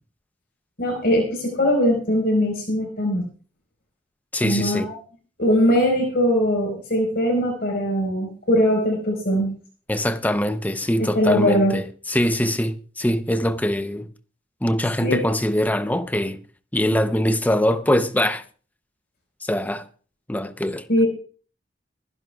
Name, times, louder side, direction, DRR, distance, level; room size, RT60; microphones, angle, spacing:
voice 1, 0.8-3.2 4.4-4.9 5.4-9.5 11.0-11.8 15.0-15.2 20.9-21.1, equal, 60° left, 4.6 m, -21 dB
voice 2, 4.3-4.9 9.9-14.1 14.6-16.4 16.7-18.4 19.4-19.8 20.3-21.0, left 1 dB, 10° left, 0.7 m, -23 dB
25.0 x 11.0 x 2.3 m
head